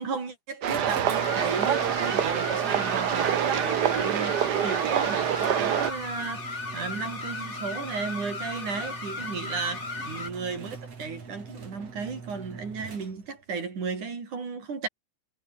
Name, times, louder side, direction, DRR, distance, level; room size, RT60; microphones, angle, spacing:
voice 1, 0.0-14.9, right 5 dB, 90° right, 6.4 m, -35 dB
sound 1, 0.6-13.4, right 5 dB, 55° right, 4.9 m, -42 dB
sound 2, 0.6-5.9, right 9 dB, 75° right, 0.9 m, -26 dB
sound 3, 1.1-10.3, left 3 dB, 25° left, 2.6 m, -36 dB
omnidirectional pair, 3.4 m